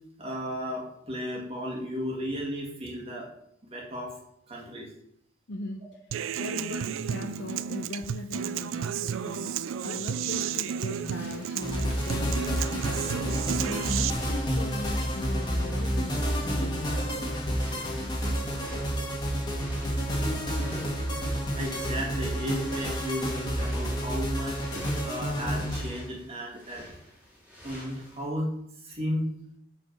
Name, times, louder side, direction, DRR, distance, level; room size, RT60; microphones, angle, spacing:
voice 1, 0.2-3.3 3.6-4.2 4.5-4.9 20.3-20.4 20.8-20.9 21.2-24.7 25.0-26.9 27.6-28.6 28.8-29.3, equal, 30° right, -2 dB, 2.0 m, -34 dB
voice 2, 5.5-6.0 6.4-9.6 9.8-13.2 13.6-17.3, left 2 dB, 60° left, 3 dB, 0.6 m, -39 dB
Human voice / Acoustic guitar, 6.1-14.1, right 8 dB, 85° right, 0.4 m, -32 dB
sound 1, 10.8-19.1 19.5-28.3, equal, 10° right, 2.8 m, -49 dB
sound 2, 11.6-25.8, equal, 20° left, 1.7 m, -30 dB
6.4 x 5.1 x 6.6 m, 0.74 s
head